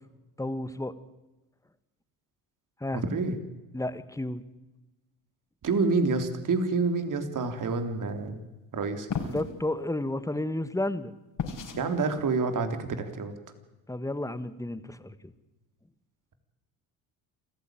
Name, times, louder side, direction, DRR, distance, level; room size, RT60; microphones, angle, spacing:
voice 1, 0.4-0.9 2.8-3.0 3.7-4.4 9.3-11.1 13.9-15.3, left 1 dB, 5° left, 13 dB, 1.7 m, -32 dB
voice 2, 2.9-3.4 5.6-8.4 8.7-9.1 11.8-13.3, right 4 dB, 45° right, 8 dB, 3.6 m, -28 dB
sound 1, 9.1-9.5 11.4-11.8, left 5 dB, 50° left, 4.6 m, -32 dB
27.0 x 15.0 x 9.3 m, 1.1 s
hypercardioid pair, 65°, 42 cm